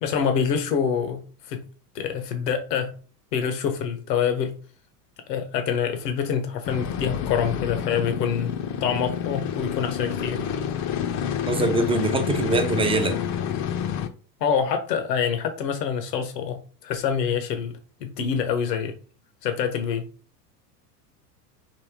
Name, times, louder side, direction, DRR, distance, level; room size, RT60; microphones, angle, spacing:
voice 1, 0.0-1.6 1.9-2.9 3.3-4.6 5.3-8.5 8.8-10.4 14.4-17.7 18.0-18.9 19.4-20.0, left 7 dB, 80° left, 1.1 m, -26 dB
sound 1, 6.6-14.1, left 8 dB, 35° left, 0.6 m, -28 dB
voice 2, 11.5-13.2, right 3 dB, 10° right, 0.5 m, -23 dB
5.2 x 2.7 x 3.5 m
hypercardioid pair, 95°, 49 cm